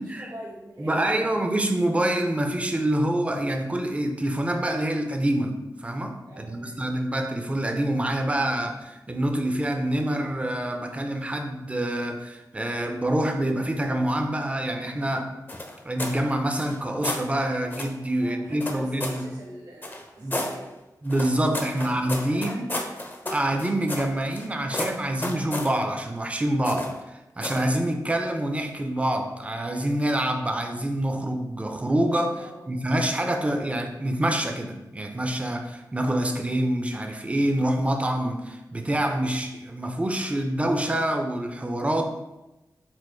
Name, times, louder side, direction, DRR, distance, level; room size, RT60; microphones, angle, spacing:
voice 1, 0.0-1.4 6.3-6.9 18.2-20.7 21.7-22.0 22.3-23.0 32.4-32.6, right 1 dB, 75° right, -7 dB, 1.3 m, -45 dB
voice 2, 0.8-15.3 15.8-19.3 20.2-20.4 21.0-22.6 23.3-26.9 27.4-42.0, right 1 dB, 20° right, 4 dB, 0.5 m, -26 dB
sound 1, 15.5-16.2 16.5-17.3 17.7-18.0 18.6-19.3 19.8-20.5 21.1-24.5 24.7-25.7 26.6-27.0 27.4-27.7, left 1 dB, 30° left, 0.6 m, -32 dB
4.3 x 2.4 x 4.3 m, 0.99 s
wide cardioid pair, 115°, 7 cm